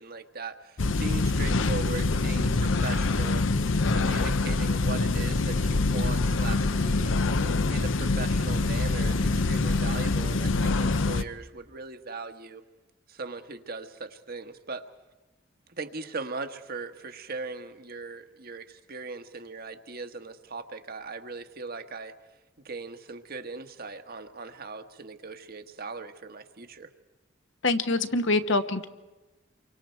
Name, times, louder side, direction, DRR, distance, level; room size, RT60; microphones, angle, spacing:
voice 1, 0.0-3.5 3.9-12.6 13.1-14.9 15.8-22.1 22.6-26.9, right 3 dB, 50° right, 8 dB, 1.3 m, -39 dB
sound 1, 0.8-11.2, left 3 dB, 90° left, 0.8 m, -25 dB
voice 2, 27.6-28.8, left 2 dB, 70° left, 9 dB, 1.3 m, -25 dB
28.5 x 24.5 x 4.6 m, 1.1 s
head